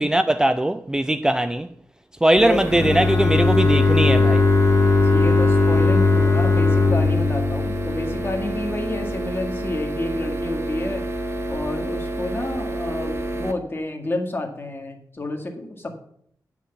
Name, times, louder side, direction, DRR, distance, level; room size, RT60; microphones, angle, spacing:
voice 1, 0.0-1.7 2.2-4.5, right 1 dB, 10° right, 0.4 m, -20 dB
voice 2, 2.4-2.7 5.0-11.1 11.5-16.0, left 1 dB, 35° left, 1.7 m, -29 dB
sound 1, 2.4-13.5, right 1 dB, 40° right, 1.1 m, -29 dB
Bowed string instrument, 2.7-8.6, left 3 dB, 55° left, 2.4 m, -19 dB
9.5 x 5.9 x 7.0 m
wide cardioid pair, 115°, 7 cm